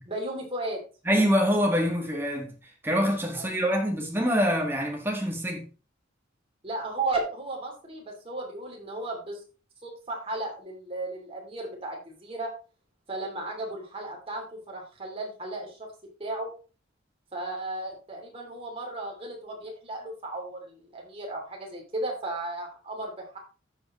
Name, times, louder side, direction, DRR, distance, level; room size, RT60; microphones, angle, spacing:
voice 1, 0.1-0.8 3.3-3.5 6.6-9.4 9.8-12.5 13.1-15.9 16.2-16.5 17.3-23.4, right 2 dB, 30° right, 3.0 m, -35 dB
voice 2, 1.1-2.5 2.8-5.7, equal, 10° right, 1.9 m, -25 dB
15.0 x 5.1 x 3.1 m
head